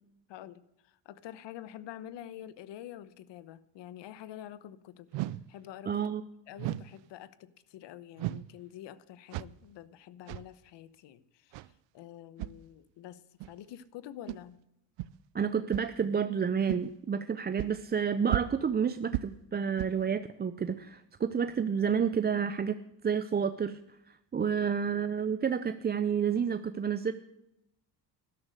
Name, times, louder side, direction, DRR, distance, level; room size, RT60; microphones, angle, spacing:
voice 1, 0.3-5.1 5.5-6.1 6.5-11.7 11.9-13.2 13.5-14.6 24.7-24.8, left 11 dB, 70° left, 17 dB, 1.1 m, -47 dB
sound 1, 5.1-5.5 6.6-7.0 8.2-8.6 9.3-9.7 10.3-10.5 11.5-11.7 12.4-12.5 13.4-13.5 14.3-14.4 15.0-15.1 15.7-16.0 16.7-16.8 17.6-17.7 18.3-18.7 19.1-19.4 19.8-20.0, right 17 dB, 70° right, 0.6 m, -35 dB
voice 2, 5.9-6.2 15.3-22.8 23.0-23.8 24.1-27.1, right 7 dB, 20° right, 11 dB, 0.5 m, -30 dB
13.0 x 12.0 x 6.6 m, 0.84 s
cardioid pair, 100°, 45 cm